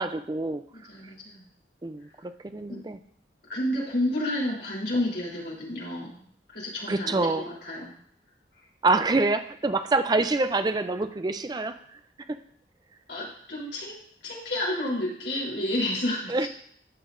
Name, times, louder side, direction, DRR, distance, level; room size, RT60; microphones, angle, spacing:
voice 1, 0.0-0.6 1.8-3.0 6.9-7.5 8.8-12.0 12.3-12.4 16.3-16.5, right 3 dB, 25° right, 10 dB, 0.4 m, -26 dB
voice 2, 0.7-1.4 2.7-2.8 3.5-6.2 6.5-7.3 7.6-7.9 13.1-14.0 14.2-16.5, left 1 dB, 75° left, -4 dB, 3.3 m, -30 dB
13.0 x 6.1 x 2.5 m, 0.63 s
head